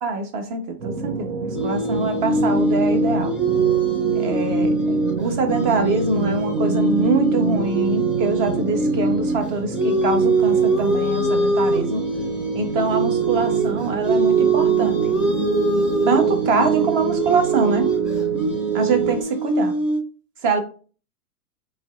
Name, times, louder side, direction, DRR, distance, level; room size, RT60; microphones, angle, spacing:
voice 1, 0.0-3.4 4.1-12.0 12.5-15.0 16.1-17.9 18.7-19.7 20.4-20.6, right 3 dB, 40° right, 1.1 m, -24 dB
sound 1, 0.8-19.2, right 5 dB, 75° right, 0.9 m, -27 dB
sound 2, 1.5-9.4 9.7-20.0, right 3 dB, ahead, 1.2 m, -23 dB
4.6 x 3.2 x 2.4 m
hypercardioid pair, 105°, 46 cm